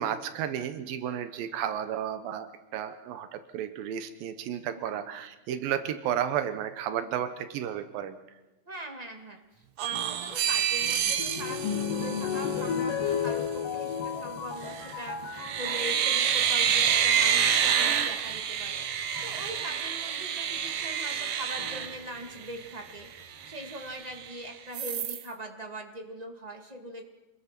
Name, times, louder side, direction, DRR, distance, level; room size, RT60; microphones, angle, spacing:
voice 1, 0.0-8.2, right 9 dB, 85° right, 10 dB, 2.8 m, -33 dB
voice 2, 8.6-9.4 9.8-27.0, equal, 15° right, 3 dB, 1.4 m, -41 dB
sound 1, 9.8-12.8 14.6-15.0 15.4-22.6 23.1-23.2 23.4-24.3 24.7-25.2, right 8 dB, 65° right, 1.4 m, -28 dB
sound 2, 10.3-15.9 16.7-17.1 18.3-18.4 19.1-19.5 21.6-22.2 22.9-23.0 23.2-23.3, left 7 dB, 75° left, 3.2 m, -33 dB
26.0 x 20.5 x 6.0 m, 1.0 s
omnidirectional pair, 4.0 m